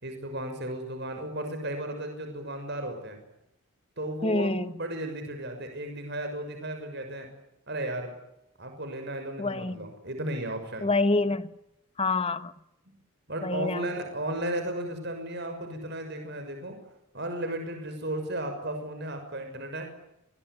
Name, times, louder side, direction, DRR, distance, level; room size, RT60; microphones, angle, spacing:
voice 1, 0.0-3.2 4.0-7.3 7.7-8.1 8.6-10.9 13.3-16.8 17.1-19.9, right 1 dB, 50° right, 6.4 m, -34 dB
voice 2, 4.2-4.7 9.4-9.9 10.8-11.5 12.0-12.5 13.4-13.9, left 2 dB, 25° left, 1.3 m, -27 dB
27.5 x 21.5 x 9.8 m
head